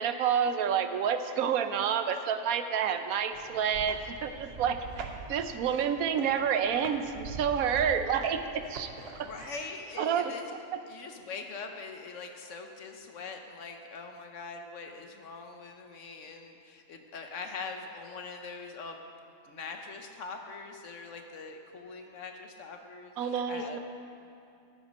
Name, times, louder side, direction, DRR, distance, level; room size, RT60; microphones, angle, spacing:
voice 1, 0.0-8.9 9.2-9.6 10.0-10.3 10.7-10.8 23.2-23.8, right 7 dB, 90° right, 9 dB, 1.1 m, -29 dB
sound 1, 3.3-9.4, right 3 dB, 50° right, 1.0 m, -44 dB
voice 2, 9.0-10.5 10.9-19.0 19.4-23.8, left 4 dB, 65° left, 4 dB, 1.2 m, -43 dB
13.5 x 8.1 x 5.3 m, 2.6 s
omnidirectional pair, 1.4 m